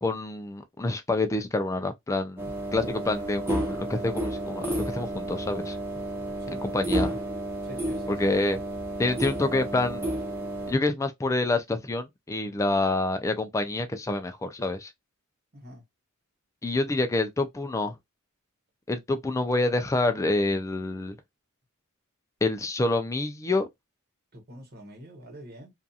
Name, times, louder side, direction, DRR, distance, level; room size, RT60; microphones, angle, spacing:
voice 1, 0.0-2.5 2.7-5.8 6.6-7.2 8.1-8.6 9.0-10.0 10.7-14.9 16.6-17.9 18.9-21.2 22.4-23.7, left 2 dB, 15° left, 0.3 m, -27 dB
sound 1, 2.4-10.7, right 1 dB, 10° right, 0.8 m, -31 dB
voice 2, 7.6-8.5 15.5-15.8 24.3-25.7, equal, 45° right, 1.1 m, -45 dB
2.7 x 2.4 x 2.3 m
head